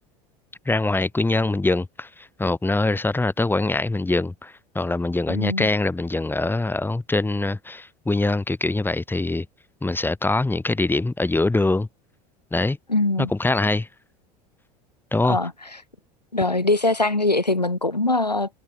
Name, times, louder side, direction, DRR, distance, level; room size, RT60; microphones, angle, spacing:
voice 1, 0.7-9.5 9.8-11.9 12.5-12.8 13.2-13.9 15.1-15.4, left 2 dB, 10° left, 7.0 m, -23 dB
voice 2, 5.3-5.7 12.9-13.3 15.3-15.5 16.3-18.5, left 2 dB, 90° left, 5.3 m, -22 dB
figure-of-eight pair, 75°, 20 cm